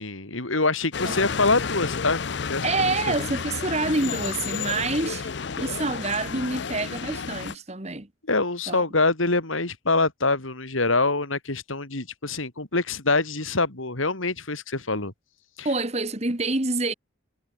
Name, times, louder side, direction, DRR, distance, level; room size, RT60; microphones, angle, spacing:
voice 1, 0.0-3.2 8.3-15.1 15.6-15.7, left 3 dB, 85° left, 3.6 m, -25 dB
sound 1, 0.9-7.5, left 5 dB, 60° left, 0.6 m, -31 dB
voice 2, 2.6-8.1 8.7-8.8 15.7-16.9, right 3 dB, 30° right, 1.7 m, -27 dB
head